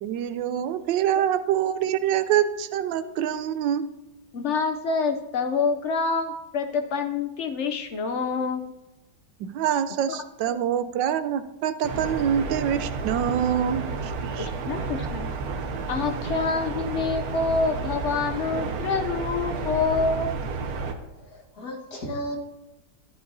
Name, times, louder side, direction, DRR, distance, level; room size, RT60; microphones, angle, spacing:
voice 1, 0.0-3.9 9.4-14.5, right 9 dB, 85° right, 12 dB, 1.3 m, -25 dB
voice 2, 4.3-8.7 10.1-10.6 14.4-15.3 15.9-20.4, left 4 dB, 85° left, 6 dB, 0.6 m, -27 dB
sound 1, 11.8-20.9, right 4 dB, 60° right, 1.2 m, -31 dB
voice 3, 21.1-22.4, equal, 60° left, 0 dB, 2.0 m, -35 dB
13.0 x 11.0 x 2.7 m, 0.99 s
omnidirectional pair, 2.0 m